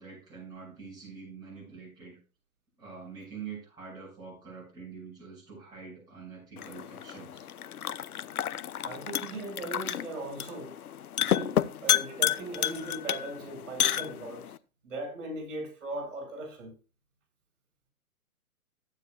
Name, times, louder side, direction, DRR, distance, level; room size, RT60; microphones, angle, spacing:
voice 1, 0.0-2.2 2.8-7.5, right 5 dB, 10° right, 6.4 m, -45 dB
sound 1, 6.6-14.6, left 10 dB, 80° left, 0.9 m, -31 dB
voice 2, 8.8-10.8 11.2-14.5 14.8-16.7, right 2 dB, 55° right, 6.0 m, -39 dB
15.0 x 9.2 x 2.4 m
hypercardioid pair, 160°, 44 cm